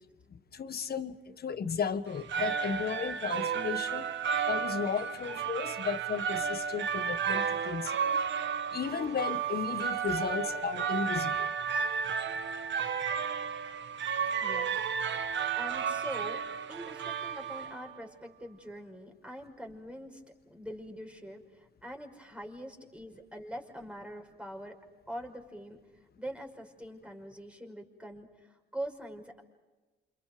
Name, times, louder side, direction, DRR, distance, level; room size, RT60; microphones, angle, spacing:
voice 1, 0.3-4.2 4.4-8.2 8.7-11.5, left 6 dB, 50° left, 11 dB, 1.5 m, -35 dB
sound 1, 2.1-18.0, right 7 dB, 60° right, 1.4 m, -33 dB
voice 2, 14.4-14.8 15.2-16.4 16.7-20.2 20.5-24.8 25.1-25.8 26.2-29.4, equal, 5° right, 2 dB, 5.5 m, -43 dB
29.0 x 28.0 x 5.1 m, 1.2 s
cardioid pair, 90°, 21 cm